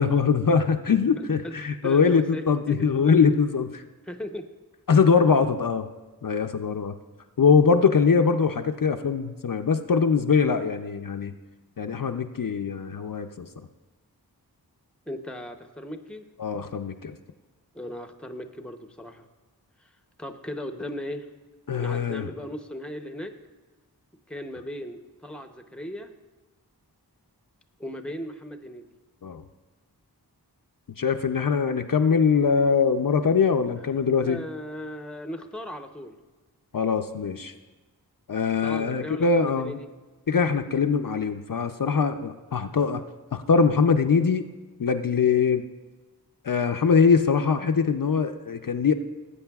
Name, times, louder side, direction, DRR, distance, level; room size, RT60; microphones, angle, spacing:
voice 1, 0.0-3.8 4.9-5.9 6.2-6.9 7.4-11.3 11.8-13.5 16.4-17.1 21.7-22.3 29.2-29.4 31.0-34.4 36.7-37.5 38.3-39.8 40.3-43.0 43.3-44.5 44.8-45.7 46.4-48.9, left 5 dB, 55° left, 6 dB, 0.5 m, -22 dB
voice 2, 1.2-1.5 1.8-2.9 4.0-4.5 15.1-16.2 17.7-19.3 19.8-19.9 20.2-21.3 21.8-23.4 24.3-26.1 27.8-28.9 34.2-36.2 38.6-39.9, equal, 5° left, 6 dB, 0.7 m, -37 dB
18.5 x 8.3 x 2.3 m, 1.2 s
wide cardioid pair, 50°, 39 cm